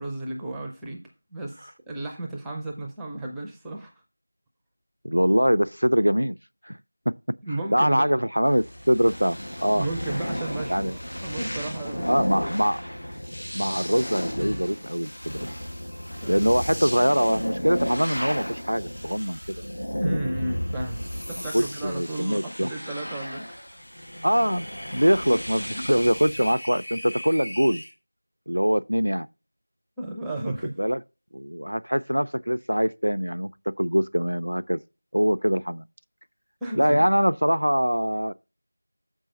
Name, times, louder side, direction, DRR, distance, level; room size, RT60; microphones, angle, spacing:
voice 1, 0.0-3.9 7.4-8.2 9.7-12.1 16.2-16.5 20.0-23.6 25.7-25.8 30.0-30.8 36.6-37.0, right 2 dB, ahead, 0.4 m, -33 dB
voice 2, 5.0-6.3 6.7-6.8 7.1-7.2 7.7-9.9 10.7-10.9 12.1-12.8 13.5-15.5 16.3-19.6 21.5-22.7 24.2-27.8 28.5-29.3 30.8-31.0 31.3-33.5 33.8-34.8 35.1-35.8 36.8-38.3, equal, 85° right, 0.4 m, -23 dB
sound 1, 8.4-26.5, equal, 85° left, 1.6 m, -33 dB
sound 2, 23.6-27.9, left 1 dB, 50° left, 1.8 m, -39 dB
7.3 x 5.4 x 5.1 m
figure-of-eight pair, 175°, 0 cm